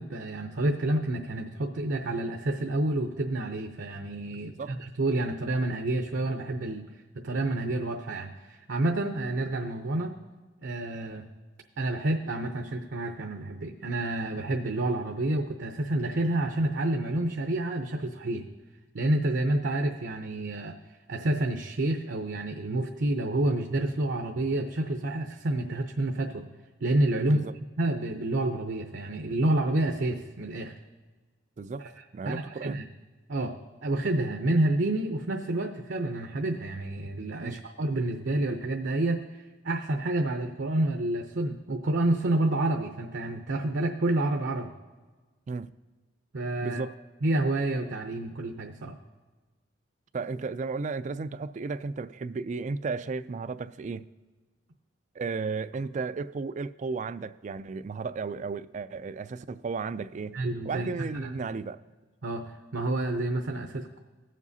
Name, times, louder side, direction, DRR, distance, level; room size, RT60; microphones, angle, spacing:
voice 1, 0.0-6.9 7.1-10.2 10.6-11.2 11.8-18.5 18.9-20.7 21.1-26.4 26.8-27.5 27.8-30.7 31.8-31.9 32.2-32.8 33.3-44.7 46.3-46.8 47.2-48.9 60.3-60.9 61.2-61.3 62.2-64.0, right 2 dB, 65° right, 0.7 m, -29 dB
voice 2, 31.6-32.8 37.4-37.6 45.5-45.7 46.6-46.9 50.1-54.1 55.2-60.4 60.6-61.8, right 4 dB, 40° right, 0.3 m, -34 dB
18.5 x 7.3 x 2.7 m
head